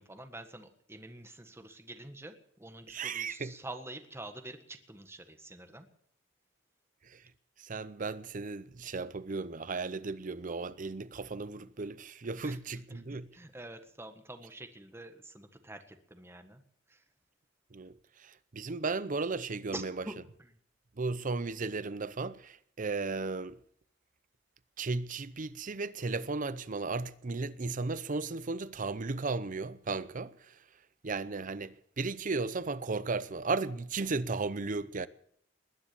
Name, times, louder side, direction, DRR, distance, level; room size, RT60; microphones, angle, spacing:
voice 1, 0.0-5.9 12.4-12.6 12.9-16.6 16.9-17.0 19.7-20.6, right 2 dB, 15° right, 1.6 m, -47 dB
voice 2, 2.9-3.5 7.0-7.2 7.6-13.3 17.7-19.9 21.0-23.6 24.8-30.6 31.0-35.1, right 3 dB, 45° right, 0.7 m, -35 dB
20.5 x 9.9 x 7.1 m
head